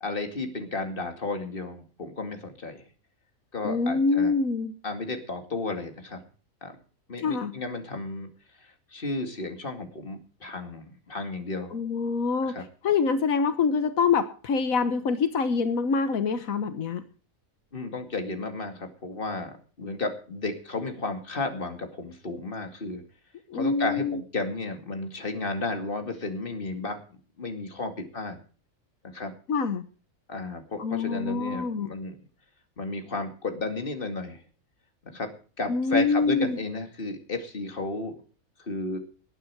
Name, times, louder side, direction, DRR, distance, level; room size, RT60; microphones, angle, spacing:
voice 1, 0.0-2.8 3.5-4.3 4.8-6.2 6.6-6.7 7.1-8.3 8.6-11.8 12.5-12.6 17.7-23.0 23.5-27.0 27.4-28.4 29.0-29.3 30.3-32.2 32.8-34.4 35.0-35.3 35.6-38.1 38.6-39.0, left 3 dB, 40° left, 5 dB, 2.5 m, -33 dB
voice 2, 3.6-4.7 7.2-7.5 11.7-17.0 23.5-24.2 29.5-29.8 30.8-31.9 35.7-36.6, left 4 dB, 85° left, 10 dB, 1.6 m, -25 dB
19.5 x 9.3 x 4.7 m, 0.37 s
omnidirectional pair, 1.4 m